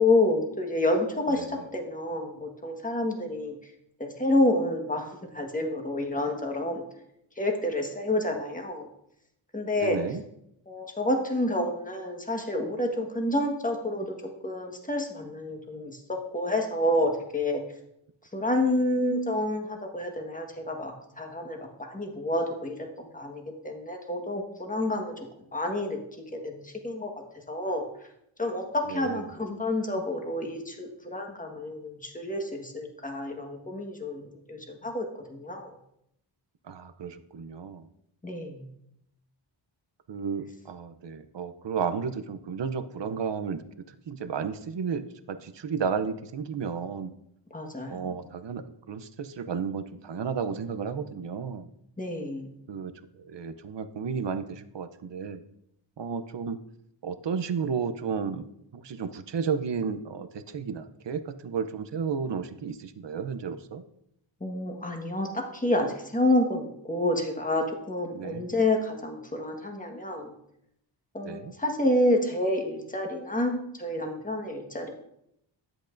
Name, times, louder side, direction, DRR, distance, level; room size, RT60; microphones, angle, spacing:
voice 1, 0.0-3.5 4.0-5.1 5.3-6.8 7.4-8.9 9.5-10.0 10.7-14.2 14.4-17.6 18.3-22.9 23.1-25.1 25.5-26.0 26.3-27.1 27.5-27.9 28.4-35.7 38.2-38.7 47.5-48.2 52.0-52.5 64.4-65.3 65.5-70.3 71.1-74.9, left 1 dB, 15° left, 2 dB, 1.5 m, -28 dB
voice 2, 1.3-1.6 9.8-10.2 28.9-29.2 36.7-37.9 40.1-43.6 43.9-47.1 47.9-51.7 52.7-55.4 56.0-56.6 57.0-58.4 58.7-63.8 68.1-68.5 71.2-71.5, right 6 dB, 60° right, 10 dB, 0.7 m, -33 dB
10.5 x 7.9 x 2.6 m, 0.77 s
wide cardioid pair, 65°, 48 cm